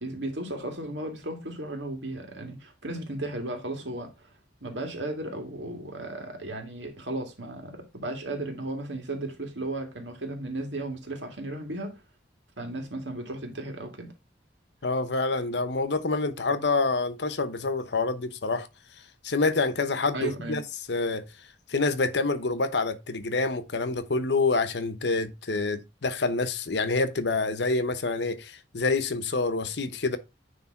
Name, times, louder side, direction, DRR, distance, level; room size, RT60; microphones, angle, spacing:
voice 1, 0.0-4.3 4.6-12.0 12.6-14.1 20.1-20.6, right 2 dB, 80° right, 2.3 m, -35 dB
voice 2, 14.8-18.7 19.2-20.6 20.9-21.3 21.7-30.2, left 3 dB, 70° left, 0.9 m, -27 dB
9.5 x 3.4 x 4.5 m
head